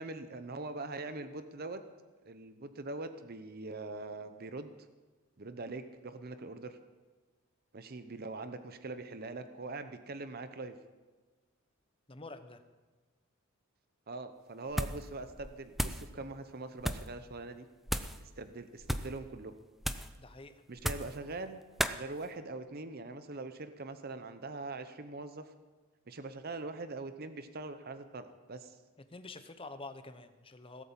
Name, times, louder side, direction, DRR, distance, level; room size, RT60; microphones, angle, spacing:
voice 1, 0.0-1.8 2.2-4.7 5.4-6.8 7.7-10.8 14.1-17.7 18.2-19.5 20.7-21.6 21.9-25.5 26.1-28.8, right 3 dB, 45° right, 10 dB, 0.8 m, -42 dB
voice 2, 12.1-12.6 20.2-20.6 29.1-30.8, left 3 dB, 25° left, 10 dB, 0.9 m, -47 dB
sound 1, 14.7-15.1 15.4-16.1 16.8-17.1 17.9-18.2 18.8-19.2 19.8-20.2 20.8-21.2 21.8-22.0, equal, ahead, 0.5 m, -34 dB
17.5 x 8.4 x 7.3 m, 1.3 s
head